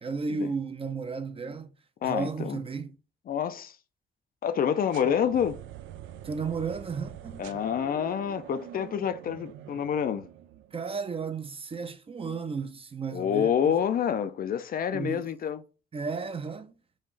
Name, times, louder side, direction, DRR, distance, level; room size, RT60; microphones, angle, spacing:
voice 1, 0.0-1.7 2.0-3.0 6.2-7.4 10.7-13.8 14.9-15.3 15.9-16.8, right 5 dB, 30° right, 0.5 m, -34 dB
voice 2, 2.0-2.6 3.3-3.7 4.4-5.6 7.4-10.3 13.1-15.6, left 8 dB, 50° left, 0.4 m, -27 dB
sound 1, 4.9-10.9, right 11 dB, 80° right, 0.4 m, -45 dB
5.4 x 2.4 x 3.1 m
cardioid pair, 90°, 20 cm